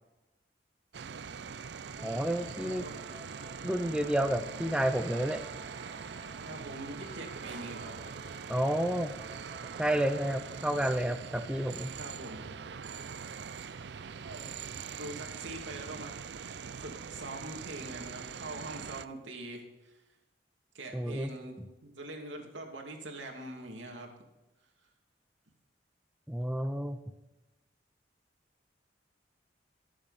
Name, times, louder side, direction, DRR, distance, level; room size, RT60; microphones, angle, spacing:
sound 1, 0.9-19.1, right 6 dB, 65° right, 0.5 m, -43 dB
voice 1, 2.0-2.9 3.6-5.4 8.5-9.1 9.8-11.9 20.9-21.3 26.3-27.0, right 1 dB, 5° right, 7 dB, 0.6 m, -30 dB
sound 2, 2.0-15.7, right 1 dB, 25° right, 1.3 m, -54 dB
voice 2, 6.4-8.0 12.0-12.4 14.2-14.5 15.0-16.1 16.4-20.0 20.7-24.1, right 2 dB, 80° right, 2 dB, 2.6 m, -43 dB
22.0 x 7.6 x 4.2 m, 1.0 s
head